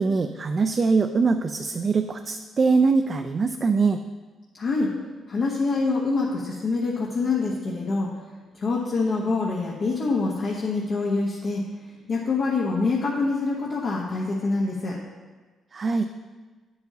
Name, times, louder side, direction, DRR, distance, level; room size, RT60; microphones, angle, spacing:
voice 1, 0.0-4.0 15.7-16.0, right 4 dB, 40° right, 6 dB, 0.4 m, -22 dB
voice 2, 4.6-4.9 5.3-8.1 8.5-11.6 12.1-15.0, left 3 dB, 55° left, -4 dB, 1.1 m, -25 dB
8.4 x 7.9 x 2.9 m, 1.3 s
cardioid pair, 90°, 0 cm